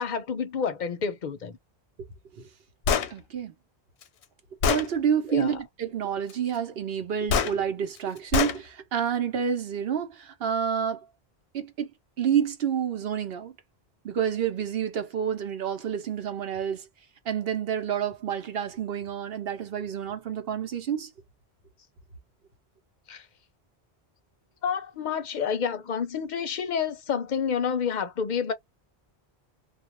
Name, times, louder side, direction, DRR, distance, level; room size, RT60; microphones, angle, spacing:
voice 1, 0.0-1.6 5.3-5.6 23.1-23.3 24.6-28.5, left 6 dB, 50° left, 0.6 m, -29 dB
Gunshot gunfire, 2.9-3.1 4.0-4.1 4.6-4.9 7.3-7.5 8.3-8.6, left 6 dB, 90° left, 0.9 m, -23 dB
voice 2, 3.1-3.5 4.7-11.1 11.5-11.9 12.2-13.5 14.0-16.8 17.3-21.1, right 8 dB, 65° right, 0.9 m, -29 dB
2.3 x 2.1 x 2.9 m
omnidirectional pair, 1.1 m